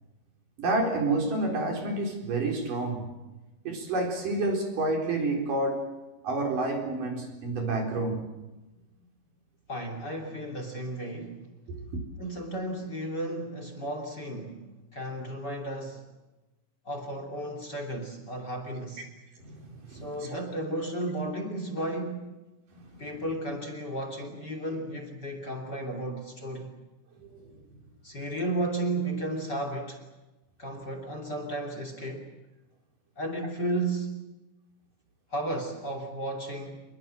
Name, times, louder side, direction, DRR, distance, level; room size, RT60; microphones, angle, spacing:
voice 1, 0.6-3.1 3.6-5.8 6.2-8.3 11.7-12.0 19.4-20.4 22.7-23.1 27.2-27.5, right 2 dB, 40° right, 5.4 m, -29 dB
voice 2, 9.7-11.5 12.2-16.0 16.8-19.1 19.9-22.3 23.0-26.7 28.0-30.0 30.6-32.3 33.2-34.3 35.3-36.8, right 1 dB, 30° left, 2.3 m, -34 dB
28.0 x 22.0 x 7.8 m
omnidirectional pair, 5.9 m